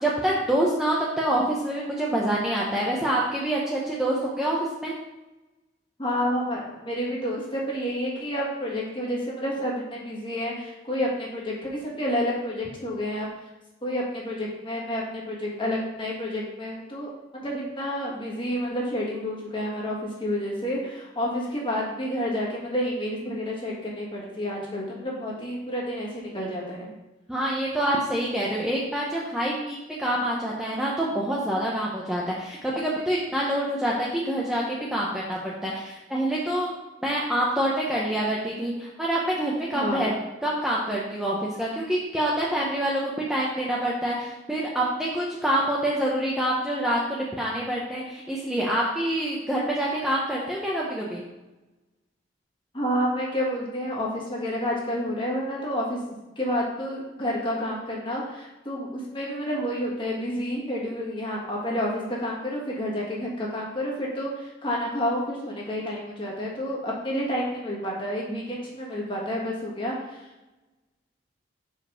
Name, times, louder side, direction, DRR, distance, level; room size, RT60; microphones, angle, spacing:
voice 1, 0.0-4.9 27.3-36.7 37.0-40.1 40.4-51.2, right 1 dB, 5° right, -5 dB, 0.7 m, -26 dB
voice 2, 6.0-13.3 13.8-26.9 39.7-40.1 52.7-56.0 56.3-70.3, equal, 25° left, -3 dB, 1.6 m, -29 dB
5.2 x 5.0 x 5.7 m, 1.0 s
head